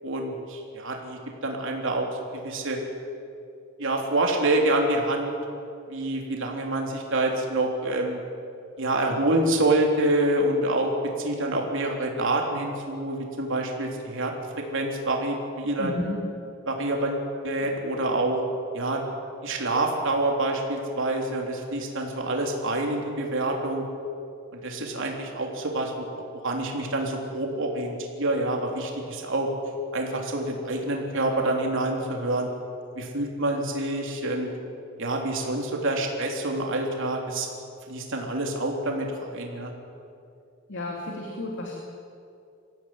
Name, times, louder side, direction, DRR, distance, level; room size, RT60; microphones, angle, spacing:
voice 1, 0.0-2.1 2.3-2.8 3.8-5.3 5.9-8.2 8.8-10.9 11.2-14.3 14.7-15.9 16.7-18.4 18.7-19.0 19.4-23.8 24.6-26.1 26.4-29.5 29.9-32.5 33.0-34.5 35.0-37.5 37.9-39.7, right 2 dB, 65° right, 1 dB, 3.6 m, -27 dB
voice 2, 15.8-16.2 40.7-41.7, left 1 dB, 60° left, 0 dB, 2.8 m, -32 dB
24.5 x 16.5 x 9.4 m, 2.5 s
head